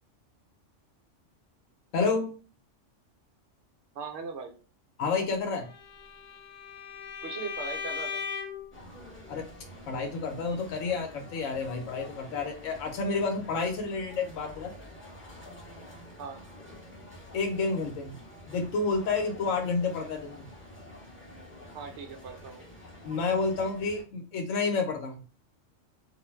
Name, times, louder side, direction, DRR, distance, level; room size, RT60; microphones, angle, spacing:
voice 1, 1.9-2.3 5.0-5.7 9.3-9.5 9.9-14.7 17.3-18.2 18.5-20.5 23.0-25.2, left 4 dB, 85° left, 4 dB, 0.9 m, -30 dB
voice 2, 4.0-4.5 7.2-8.2 16.2-16.4 21.7-22.6, right 5 dB, 70° right, 4 dB, 0.9 m, -39 dB
Bowed string instrument, 5.7-8.7, left 6 dB, 60° left, 0.4 m, -37 dB
sound 1, 8.7-24.0, left 1 dB, 10° left, 0.7 m, -48 dB
2.4 x 2.0 x 3.1 m, 0.38 s
omnidirectional pair, 1.3 m